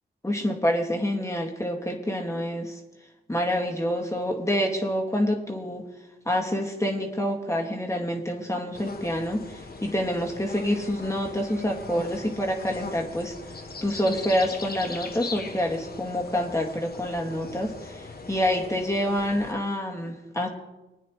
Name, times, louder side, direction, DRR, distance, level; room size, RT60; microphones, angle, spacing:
voice 1, 0.2-2.8 3.3-5.9 6.3-20.5, equal, 15° left, 0 dB, 2.1 m, -27 dB
sound 1, 8.7-19.5, left 3 dB, 50° left, 1.3 m, -40 dB
22.5 x 9.3 x 3.2 m, 0.99 s
cardioid pair, 45°, 21 cm